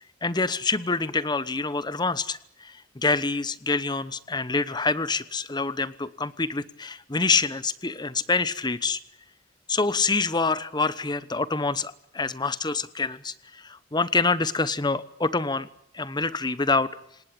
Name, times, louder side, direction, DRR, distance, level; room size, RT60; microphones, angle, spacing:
voice 1, 0.2-9.0 9.7-15.7 15.9-16.9, left 3 dB, 25° left, 16 dB, 1.0 m, -26 dB
28.0 x 18.5 x 8.8 m, 0.72 s
head